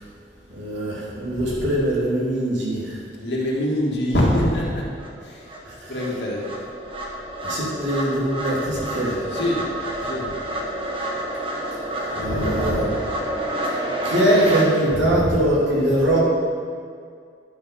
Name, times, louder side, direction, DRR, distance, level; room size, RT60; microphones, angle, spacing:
voice 1, 0.5-3.0 5.6-6.0 7.4-9.2 12.1-12.9 13.6-13.8 14.0-16.2, right 1 dB, 85° right, -6 dB, 2.9 m, -22 dB
voice 2, 1.4-1.7 3.2-4.8 5.9-6.4 8.7-8.9 9.3-9.6 10.1-10.2 12.3-13.0 15.0-15.5, left 1 dB, 70° left, -4 dB, 2.2 m, -24 dB
sound 1, 4.6-4.7 5.0-14.7, right 1 dB, 30° right, 1.3 m, -29 dB
11.5 x 6.0 x 5.9 m, 2.2 s
head